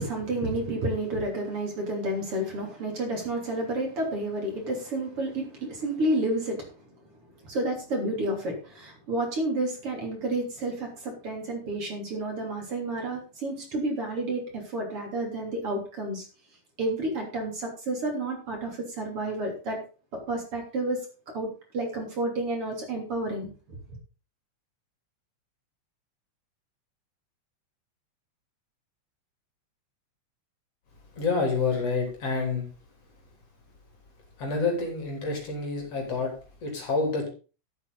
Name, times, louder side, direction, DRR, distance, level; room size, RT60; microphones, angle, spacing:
voice 1, 0.0-7.0 7.3-16.3 16.8-19.8 20.3-21.0 21.3-21.5 21.7-23.5 23.9-24.0, right 1 dB, 50° right, 1 dB, 4.1 m, -30 dB
voice 2, 31.2-32.7 34.4-36.3 36.6-37.3, left 4 dB, 55° left, 1 dB, 4.4 m, -28 dB
13.0 x 8.3 x 4.1 m, 0.34 s
omnidirectional pair, 3.3 m